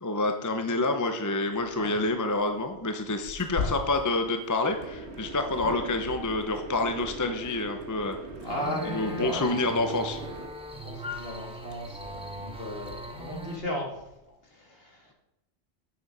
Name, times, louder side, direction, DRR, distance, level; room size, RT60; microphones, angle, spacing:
voice 1, 0.0-8.2 8.9-10.2, left 2 dB, 20° left, 6 dB, 0.7 m, -28 dB
Tearing, 1.6-14.2, left 5 dB, 75° left, 1.6 m, -44 dB
sound 1, 4.7-10.5, right 3 dB, 75° right, 1.6 m, -42 dB
voice 2, 5.6-5.9 8.3-9.7 10.7-14.2 14.4-15.1, left 1 dB, 60° left, 0 dB, 2.2 m, -36 dB
sound 2, 8.5-13.6, equal, 5° right, 1.2 m, -39 dB
9.4 x 7.0 x 5.4 m, 0.94 s
omnidirectional pair, 1.1 m